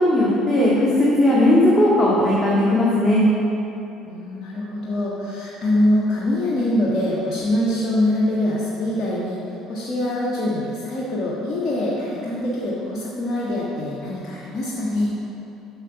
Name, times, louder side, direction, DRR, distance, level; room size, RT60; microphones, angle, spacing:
voice 1, 0.0-3.2, left 1 dB, 15° left, -7 dB, 1.9 m, -17 dB
voice 2, 4.1-9.4 9.7-15.1, left 1 dB, 45° left, -6 dB, 1.4 m, -24 dB
7.4 x 6.4 x 5.8 m, 2.9 s
hypercardioid pair, 60°, 0 cm